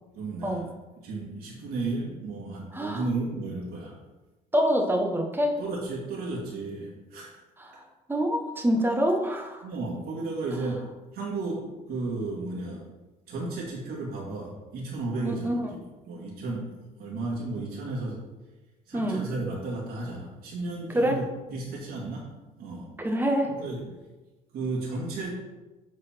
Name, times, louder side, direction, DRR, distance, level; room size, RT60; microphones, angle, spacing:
voice 1, 0.1-0.7 1.0-4.0 5.6-7.3 9.6-12.9 13.3-18.3 18.9-21.3 21.5-22.3 22.6-23.0 23.4-24.0 24.5-25.3, right 3 dB, 70° right, -5 dB, 2.1 m, -34 dB
voice 2, 2.7-3.0 4.5-5.6 7.6-7.8 8.1-9.6 15.2-15.7 18.9-19.2 20.9-21.2 23.0-23.5, equal, 10° right, 3 dB, 1.1 m, -26 dB
8.0 x 4.0 x 4.4 m, 1.1 s
cardioid pair, 110°, 17 cm